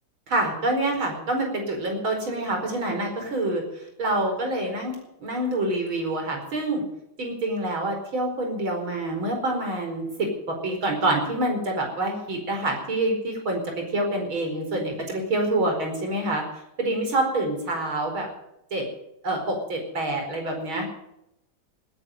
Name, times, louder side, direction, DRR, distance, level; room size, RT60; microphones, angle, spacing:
voice 1, 0.3-6.8 7.2-16.4 16.8-18.3 18.7-18.9 19.2-20.9, right 1 dB, 70° right, 3 dB, 5.5 m, -27 dB
18.5 x 11.0 x 6.5 m, 0.83 s
omnidirectional pair, 2.3 m